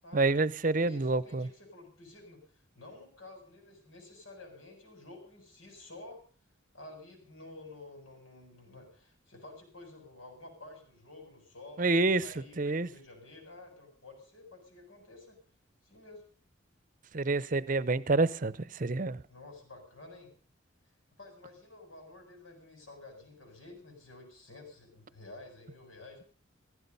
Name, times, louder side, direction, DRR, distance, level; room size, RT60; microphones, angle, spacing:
voice 1, 0.1-1.5 11.8-12.2 12.6-12.9 17.1-18.5 18.8-19.2, right 3 dB, 40° right, 0.7 m, -27 dB
voice 2, 0.7-6.2 6.7-15.4 15.8-16.3 19.3-20.3 21.2-26.3, left 2 dB, 90° left, 7.6 m, -51 dB
16.0 x 16.0 x 5.4 m
head